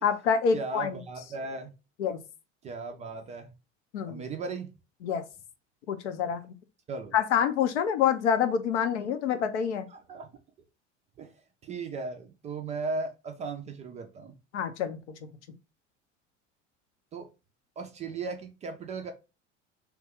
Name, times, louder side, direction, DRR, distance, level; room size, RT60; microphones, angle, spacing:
voice 1, 0.0-1.0 2.0-2.2 3.9-4.2 5.0-5.2 5.9-6.5 7.1-9.9 14.5-15.0, left 7 dB, 65° left, 0.6 m, -27 dB
voice 2, 0.5-1.7 2.6-3.5 4.0-4.7 6.9-7.1 10.1-10.3 11.2-11.3 11.6-14.4 17.1-17.3 17.8-19.1, right 4 dB, 20° right, 0.3 m, -36 dB
2.9 x 2.2 x 3.4 m
figure-of-eight pair, 70°, 37 cm